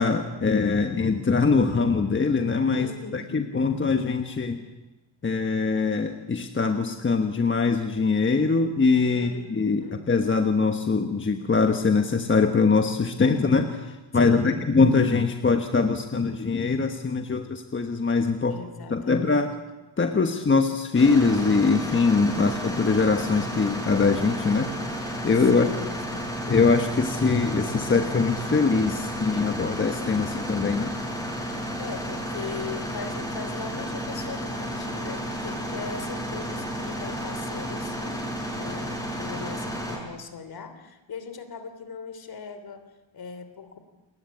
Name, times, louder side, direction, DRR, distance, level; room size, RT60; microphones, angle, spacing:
voice 1, 0.0-4.6 5.2-18.6 18.9-19.5 20.0-24.7 25.2-25.7 26.5-30.9, left 4 dB, 25° left, 6 dB, 1.3 m, -23 dB
voice 2, 2.7-3.4 9.1-10.1 14.1-14.6 18.5-19.5 25.4-26.4 31.8-43.8, left 5 dB, 50° left, 10 dB, 3.2 m, -39 dB
sound 1, 20.9-40.0, equal, 5° left, 7.0 m, -32 dB
29.0 x 21.0 x 8.5 m, 1.1 s
wide cardioid pair, 155°, 47 cm